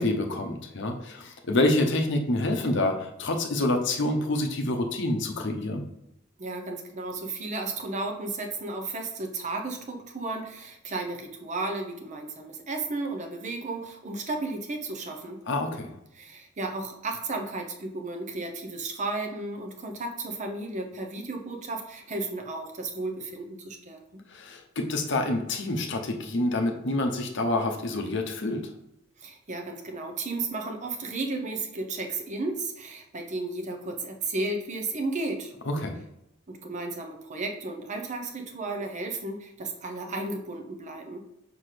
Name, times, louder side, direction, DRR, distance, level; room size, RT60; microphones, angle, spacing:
voice 1, 0.0-5.9 15.5-15.9 24.3-28.7 35.7-36.0, left 2 dB, 55° left, 3 dB, 0.8 m, -27 dB
voice 2, 6.4-15.4 16.1-24.2 29.2-35.5 36.5-41.2, right 2 dB, 35° right, 3 dB, 0.7 m, -34 dB
6.0 x 5.2 x 3.3 m, 0.82 s
head